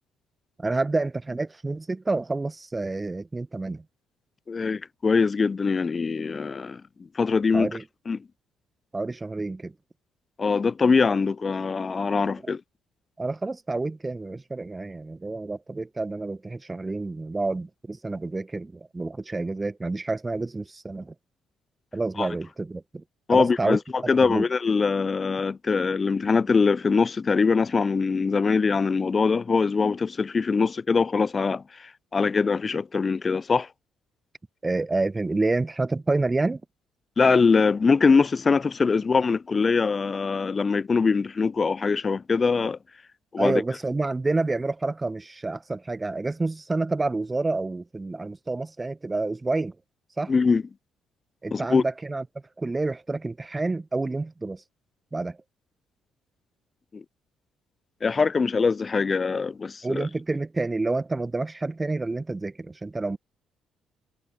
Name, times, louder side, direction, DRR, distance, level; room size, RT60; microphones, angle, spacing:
voice 1, 0.6-3.8 7.5-7.8 8.9-9.7 12.4-12.5 13.2-21.1 21.9-23.0 23.3-23.8 24.2-24.5 34.6-36.6 43.4-49.7 50.2-50.3 51.4-52.2 52.6-54.6 55.1-55.4 59.8-63.2, right 3 dB, 20° right, 1.7 m, -28 dB
voice 2, 4.5-6.8 7.2-7.7 8.1-8.2 10.4-12.6 22.2-22.3 23.3-23.8 24.1-33.7 37.2-42.8 43.3-43.6 50.3-50.6 51.5-51.8 56.9-57.0 58.0-60.1, left 4 dB, 35° left, 0.4 m, -23 dB
figure-of-eight pair, 45°, 0 cm